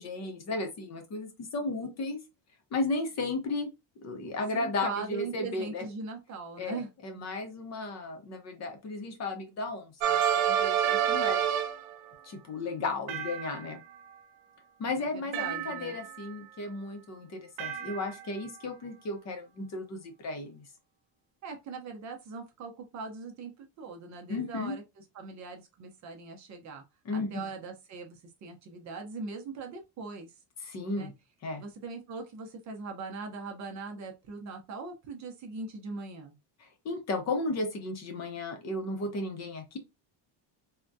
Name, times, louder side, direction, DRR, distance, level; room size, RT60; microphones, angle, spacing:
voice 1, 0.0-2.2 2.7-3.7 4.0-5.8 6.6-11.4 12.2-13.8 14.8-20.7 24.3-24.8 27.0-27.4 30.6-31.1 31.4-31.6 36.6-39.8, left 2 dB, 35° left, 0.7 m, -34 dB
voice 2, 4.5-6.9 15.0-16.0 21.4-24.8 25.1-26.8 27.1-30.3 30.9-31.1 31.6-36.4, right 4 dB, 40° right, 0.6 m, -40 dB
sound 1, 10.0-12.0 13.1-14.0 15.3-16.3 17.6-18.5, right 9 dB, 80° right, 0.7 m, -29 dB
3.5 x 2.2 x 2.6 m
cardioid pair, 170°, 45 cm